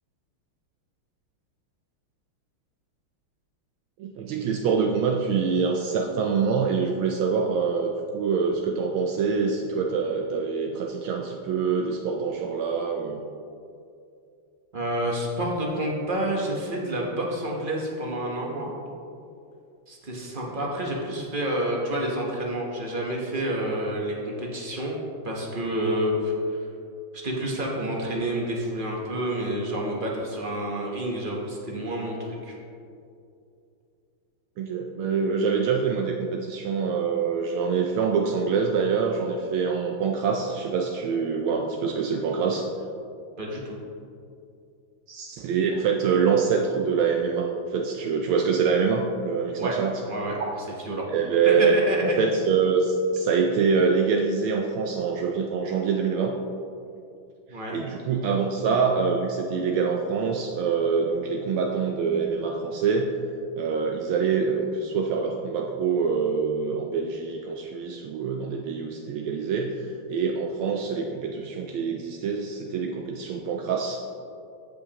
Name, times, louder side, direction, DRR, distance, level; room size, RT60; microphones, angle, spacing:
voice 1, 4.0-13.2 20.6-20.7 34.6-42.7 45.1-50.0 51.0-51.8 52.0-56.3 57.5-63.1 63.6-74.1, right 5 dB, 75° right, 2 dB, 1.4 m, -25 dB
voice 2, 14.7-18.7 19.9-25.0 25.2-26.6 27.2-32.5 43.4-43.8 49.6-49.8 50.1-50.4 50.8-51.1 51.6-52.1 57.5-57.8, right 1 dB, 40° right, -2 dB, 0.7 m, -29 dB
14.5 x 5.2 x 2.9 m, 2.5 s
omnidirectional pair, 2.4 m